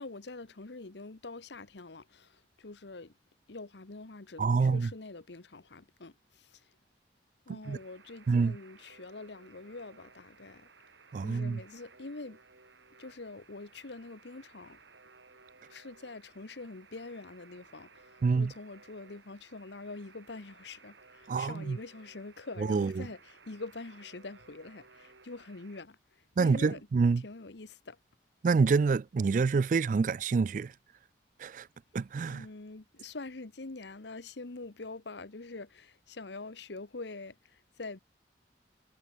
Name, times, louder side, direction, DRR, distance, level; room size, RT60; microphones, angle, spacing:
voice 1, 0.0-3.1 3.5-6.7 7.5-10.7 11.2-12.4 13.0-14.8 15.7-26.9 27.2-28.0 32.3-38.0, left 3 dB, 70° left, 1.1 m, -45 dB
voice 2, 4.4-4.9 7.5-7.8 8.3-8.6 11.1-11.6 18.2-18.5 21.3-21.8 22.6-23.0 26.4-27.2 28.4-30.7 31.4-31.7 31.9-32.4, right 4 dB, 45° right, 0.3 m, -27 dB
Alarm, 7.6-25.8, right 4 dB, 85° right, 7.8 m, -59 dB
head